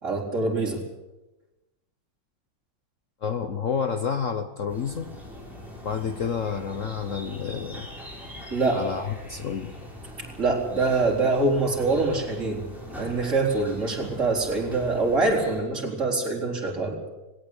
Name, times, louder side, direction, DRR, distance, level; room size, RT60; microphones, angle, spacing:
voice 1, 0.0-0.8 8.5-8.8 10.2-17.0, right 3 dB, 40° right, -1 dB, 4.6 m, -25 dB
voice 2, 3.2-5.1 5.8-7.9 8.7-9.7, left 6 dB, 50° left, 9 dB, 1.1 m, -29 dB
sound 1, 4.7-15.6, left 1 dB, ahead, 6.3 m, -42 dB
19.5 x 18.0 x 8.4 m, 1.1 s
omnidirectional pair, 2.0 m